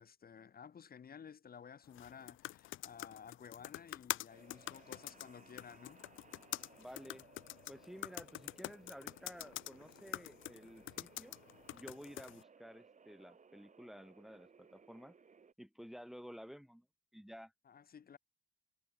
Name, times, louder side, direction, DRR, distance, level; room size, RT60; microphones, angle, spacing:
voice 1, 0.0-6.0 17.7-18.2, left 7 dB, 50° left, 3.8 m, -54 dB
sound 1, 1.9-12.4, left 16 dB, 80° left, 0.7 m, -46 dB
sound 2, 4.3-15.5, right 5 dB, 40° right, 4.6 m, -63 dB
voice 2, 6.8-7.3 7.7-11.4 11.7-15.2 15.6-16.9 17.1-17.5, equal, ahead, 2.2 m, -53 dB
cardioid pair, 90°, 20 cm